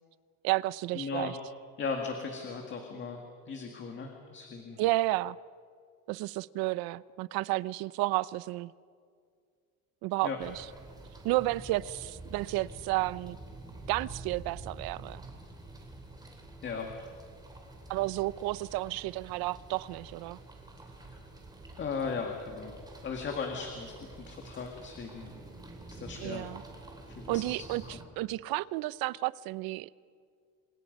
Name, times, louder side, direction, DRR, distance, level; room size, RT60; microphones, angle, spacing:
voice 1, 0.4-1.4 4.8-5.4 6.1-8.7 10.0-10.7 11.2-13.4 13.9-15.2 17.9-20.4 26.2-26.6 27.3-27.8 28.2-30.0, right 18 dB, 80° right, 0.7 m, -31 dB
voice 2, 0.9-1.3 1.8-4.8 10.2-10.4 16.6-16.9 21.0-21.2 21.8-25.3 25.9-26.5 27.1-27.4 27.9-28.0, left 5 dB, 30° left, 2.1 m, -37 dB
sound 1, 10.4-28.0, right 2 dB, 10° right, 3.1 m, -48 dB
28.5 x 26.0 x 5.4 m
cardioid pair, 165°, 36 cm